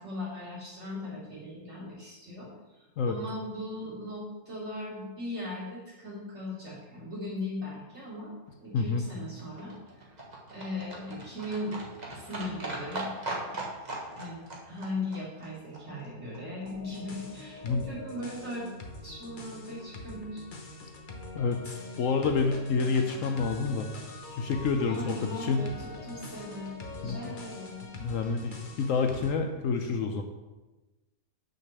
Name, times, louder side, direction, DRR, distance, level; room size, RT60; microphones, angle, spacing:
voice 1, 0.0-2.5 3.1-8.3 8.6-9.8 10.5-13.6 14.1-18.7 19.0-20.4 24.9-27.8, left 1 dB, 45° right, -8 dB, 3.5 m, -38 dB
Livestock farm animals working animals, 8.5-16.7 17.0-17.1 17.3-17.4 17.6-17.7 17.9-18.0 18.2-18.3 18.5-18.6 18.8-18.9 19.2-19.3, right 2 dB, 30° right, 1.4 m, -40 dB
sound 1, 16.6-29.3, left 2 dB, 35° left, 1.0 m, -44 dB
voice 2, 21.3-23.9 24.4-25.6 27.0-27.2 28.0-30.2, left 4 dB, 65° left, 5 dB, 1.0 m, -28 dB
6.5 x 5.0 x 6.8 m, 1.1 s
omnidirectional pair, 1.6 m